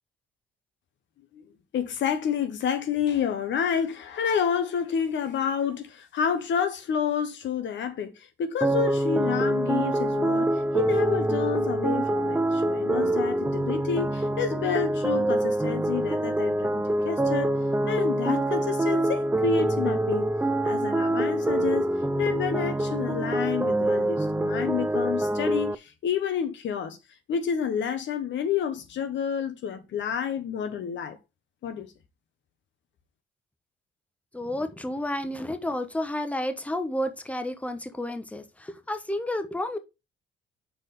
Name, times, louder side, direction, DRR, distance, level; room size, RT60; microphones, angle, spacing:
voice 1, 1.7-17.6 17.9-20.3 20.6-21.9 22.2-27.0 27.3-31.2 31.6-31.9, left 7 dB, 70° left, 1.1 m, -29 dB
sound 1, 8.6-25.7, right 1 dB, 10° right, 0.4 m, -25 dB
voice 2, 34.3-39.8, left 1 dB, 5° left, 1.0 m, -31 dB
6.1 x 4.3 x 5.3 m
cardioid pair, 90°, 20 cm